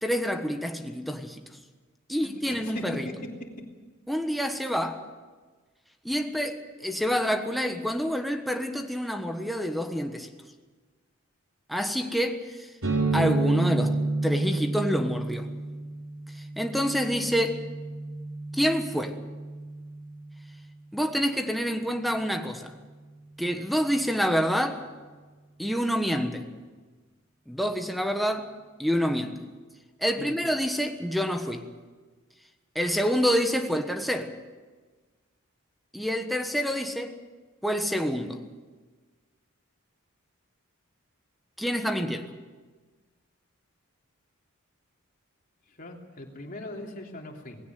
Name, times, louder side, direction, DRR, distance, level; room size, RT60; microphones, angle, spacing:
voice 1, 0.0-1.4 2.1-3.1 4.1-5.0 6.0-10.3 11.7-12.6 13.1-14.0 14.2-15.5 16.6-17.6 18.5-19.2 20.9-22.7 23.4-24.8 25.6-26.5 27.5-28.5 28.8-29.3 30.0-31.7 32.7-34.3 35.9-37.1 37.6-38.4 41.6-42.3, equal, ahead, 1.3 m, -27 dB
voice 2, 2.6-3.1 30.2-30.3 45.8-47.6, left 1 dB, 40° left, 3.2 m, -39 dB
sound 1, 12.8-20.4, right 2 dB, 75° right, 3.7 m, -30 dB
19.5 x 17.0 x 9.3 m
head